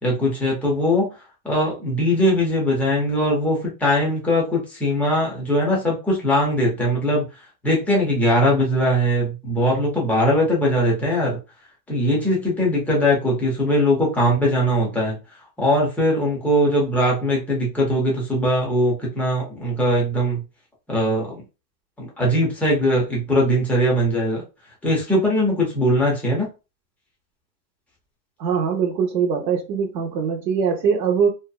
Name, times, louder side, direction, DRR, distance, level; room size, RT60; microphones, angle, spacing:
voice 1, 0.0-1.1 1.4-7.2 7.6-11.4 11.9-15.2 15.6-20.4 20.9-21.4 22.0-24.4 24.8-26.5, equal, 5° left, 0.3 m, -20 dB
voice 2, 28.4-31.3, right 6 dB, 80° right, 0.7 m, -22 dB
2.7 x 2.2 x 2.2 m
hypercardioid pair, 120°, 50 cm